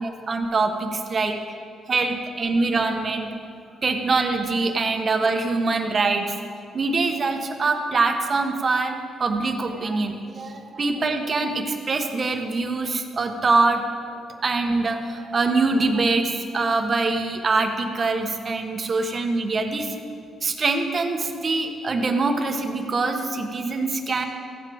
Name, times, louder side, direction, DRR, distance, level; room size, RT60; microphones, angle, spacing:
voice 1, 0.0-1.4 1.9-3.3 3.8-6.3 6.7-8.9 9.2-13.8 14.4-19.9 20.4-24.2, right 3 dB, 40° right, 5 dB, 1.1 m, -24 dB
15.5 x 9.1 x 3.6 m, 2.3 s
cardioid pair, 90°, 0 cm